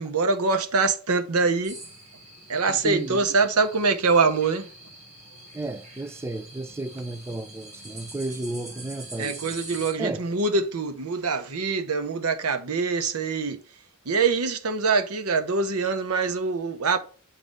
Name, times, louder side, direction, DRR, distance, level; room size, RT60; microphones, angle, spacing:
voice 1, 0.0-1.7 2.5-4.7 9.2-13.6 14.1-17.0, right 4 dB, 80° right, 0.8 m, -24 dB
sound 1, 1.6-9.9, right 2 dB, 35° right, 2.7 m, -44 dB
voice 2, 2.7-3.2 5.5-9.4 10.0-10.2, right 2 dB, 10° right, 0.3 m, -33 dB
7.6 x 3.3 x 5.2 m
head